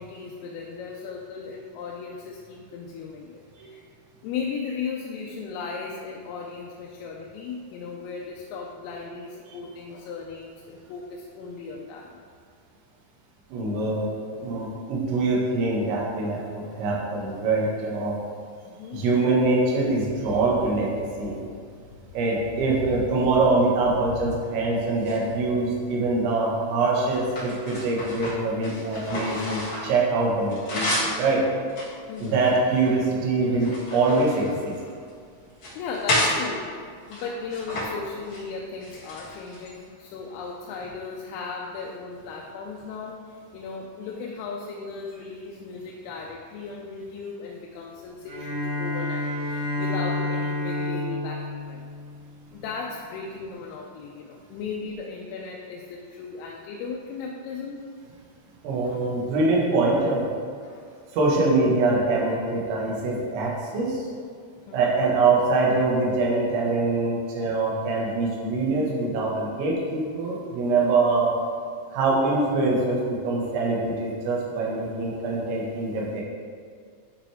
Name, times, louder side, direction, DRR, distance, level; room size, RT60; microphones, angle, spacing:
voice 1, 0.0-3.9 4.2-12.2 18.7-19.0 20.3-20.6 21.0-21.9 22.4-23.2 24.1-24.4 24.9-25.0 25.5-25.8 32.1-32.6 35.8-36.8 37.1-51.9 52.5-57.8 58.8-59.1 60.6-60.9 64.7-65.1, left 5 dB, 85° left, -1 dB, 3.2 m, -36 dB
voice 2, 13.5-14.1 14.4-18.2 18.9-21.4 22.1-30.9 31.2-31.4 32.2-34.7 58.6-60.2 61.1-64.1 64.7-71.3 71.9-76.2, right 3 dB, 80° right, -4 dB, 4.2 m, -24 dB
sound 1, 24.9-25.9 26.5-30.0 30.3-31.2 31.7-33.0 33.4-35.1 35.5-36.4 37.0-37.9 38.1-38.4 38.8-39.8, left 1 dB, 55° left, 1.4 m, -31 dB
Bowed string instrument, 48.2-52.7, left 2 dB, 65° right, 4.0 m, -30 dB
11.0 x 5.9 x 3.5 m, 2.1 s
omnidirectional pair, 5.8 m